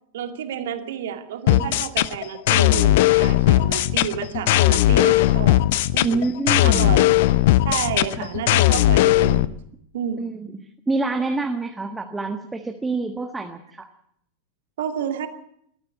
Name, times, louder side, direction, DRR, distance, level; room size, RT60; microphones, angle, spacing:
voice 1, 0.1-5.6 5.9-6.3 6.6-7.2 7.6-9.4 9.9-10.3 14.8-15.3, right 9 dB, 55° right, 6 dB, 2.3 m, -30 dB
sound 1, 1.5-9.5, left 15 dB, 50° left, 0.7 m, -18 dB
voice 2, 6.0-7.0 8.2-8.3 10.2-10.5 10.9-13.9, right 3 dB, 10° right, 5 dB, 1.5 m, -27 dB
20.5 x 14.0 x 9.5 m, 0.70 s
figure-of-eight pair, 90°, 0 cm